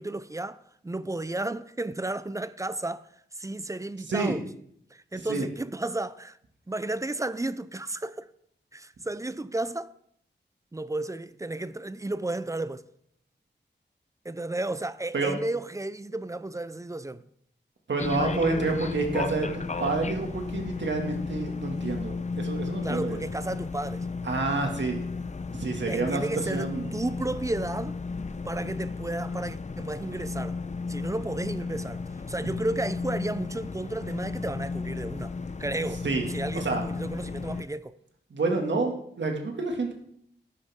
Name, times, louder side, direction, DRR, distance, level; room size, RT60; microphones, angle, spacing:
voice 1, 0.0-3.1 3.4-4.4 4.9-6.4 6.7-8.3 8.7-9.9 10.7-12.8 14.2-17.2 22.8-24.1 25.9-28.0 28.4-30.6 30.9-32.0 32.3-35.3 35.6-36.0 36.3-38.0, right 2 dB, 15° right, 0.5 m, -33 dB
voice 2, 17.9-23.2 24.2-25.0 25.5-26.9 32.4-32.5 36.0-36.2 36.5-36.8 38.3-39.9, right 3 dB, 75° right, 2.2 m, -28 dB
sound 1, 18.0-37.6, left 4 dB, 40° left, 0.7 m, -34 dB
17.5 x 10.5 x 3.7 m
wide cardioid pair, 90°, 19 cm